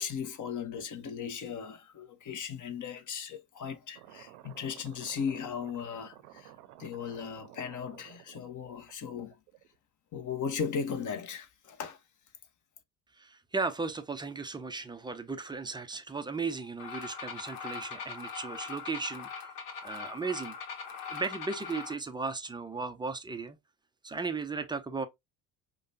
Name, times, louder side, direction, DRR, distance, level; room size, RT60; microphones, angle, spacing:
voice 1, 0.0-6.5 6.8-9.4 10.1-12.0, left 7 dB, 35° left, 0.8 m, -37 dB
sound 1, 3.9-9.8, right 13 dB, 75° right, 0.7 m, -53 dB
voice 2, 13.2-19.5 19.8-20.6 21.1-23.6 24.0-25.1, right 4 dB, 10° right, 0.3 m, -36 dB
sound 2, 16.8-21.9, left 6 dB, 75° left, 1.0 m, -41 dB
4.9 x 2.2 x 2.6 m
hypercardioid pair, 65°, 50 cm